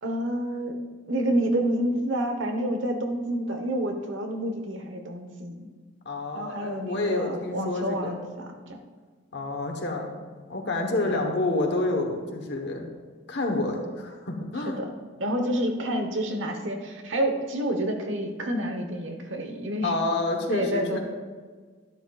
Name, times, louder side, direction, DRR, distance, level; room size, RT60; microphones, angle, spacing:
voice 1, 0.0-0.8 1.1-5.7 6.3-8.8 11.0-11.2 14.6-14.8 15.2-19.9 20.5-21.0, right 1 dB, 80° right, 5 dB, 1.1 m, -28 dB
voice 2, 6.0-8.2 9.3-10.1 10.5-12.9 13.3-14.8 19.8-21.0, left 2 dB, 60° left, 2 dB, 1.1 m, -28 dB
11.0 x 11.0 x 2.4 m, 1.5 s
head